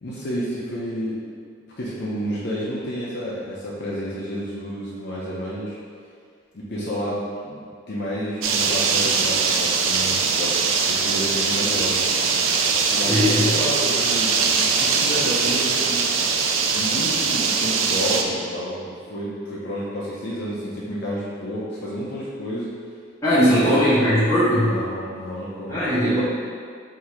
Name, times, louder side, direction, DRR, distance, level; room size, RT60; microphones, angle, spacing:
voice 1, 0.0-1.2 1.8-5.8 6.5-10.6 10.9-12.0 12.9-16.1 16.7-22.7 23.5-23.9 24.6-25.8, equal, 60° left, -7 dB, 0.7 m, -30 dB
sound 1, 8.4-18.2, right 5 dB, 80° right, 0.4 m, -21 dB
voice 2, 13.1-13.5 23.2-24.7 25.7-26.2, equal, 15° left, -12 dB, 1.4 m, -19 dB
3.6 x 2.7 x 4.5 m, 2.1 s
head